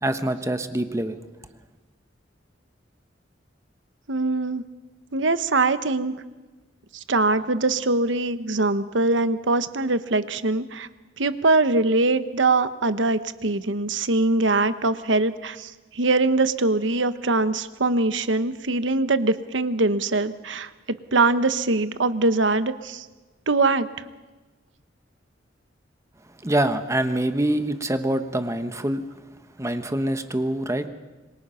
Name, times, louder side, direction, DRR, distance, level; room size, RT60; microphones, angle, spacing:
voice 1, 0.0-1.2 26.4-29.0 29.6-30.9, right 1 dB, 15° right, 9 dB, 1.1 m, -25 dB
voice 2, 4.1-4.6 5.1-6.1 6.9-10.9 11.2-20.7 21.1-23.0 23.5-23.9, right 3 dB, 75° right, 12 dB, 1.1 m, -22 dB
26.5 x 22.5 x 5.7 m, 1.2 s
head